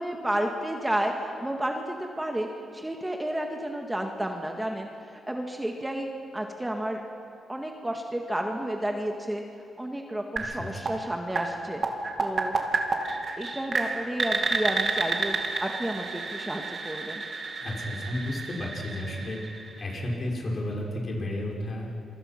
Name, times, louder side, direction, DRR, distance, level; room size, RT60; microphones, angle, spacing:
voice 1, 0.0-2.5 2.7-6.1 6.3-7.0 7.5-9.4 9.8-11.8 12.2-12.5 13.4-17.2, right 1 dB, 10° right, 2 dB, 1.8 m, -31 dB
sound 1, 10.4-20.2, right 3 dB, 45° right, 2.6 m, -31 dB
voice 2, 17.6-19.4 19.8-22.0, left 1 dB, 40° left, -2 dB, 5.5 m, -32 dB
28.0 x 23.5 x 5.9 m, 2.9 s
cardioid pair, 100°, 0 cm